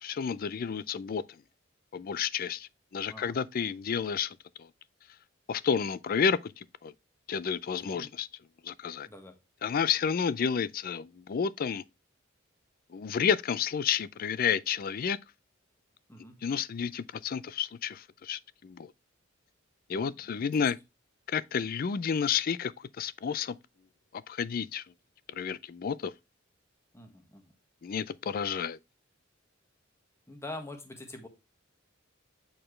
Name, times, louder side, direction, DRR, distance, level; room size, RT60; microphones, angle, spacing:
voice 1, 0.0-1.2 1.9-4.4 5.5-6.9 7.3-8.3 8.6-9.1 9.6-11.8 12.9-15.2 16.4-18.9 19.9-20.8 21.3-23.6 24.3-24.8 25.3-26.1 27.8-28.8, left 7 dB, 45° left, 0.4 m, -31 dB
voice 2, 19.9-20.5 26.9-27.5 30.3-31.3, left 2 dB, 15° left, 1.4 m, -45 dB
7.7 x 4.4 x 3.2 m
head